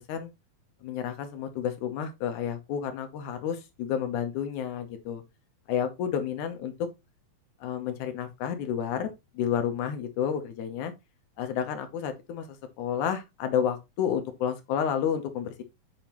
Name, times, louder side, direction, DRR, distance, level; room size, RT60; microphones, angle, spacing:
voice 1, 0.8-5.2 5.7-6.7 7.6-10.9 11.4-15.6, left 8 dB, 70° left, 2.1 m, -30 dB
7.2 x 6.1 x 3.0 m
omnidirectional pair, 4.1 m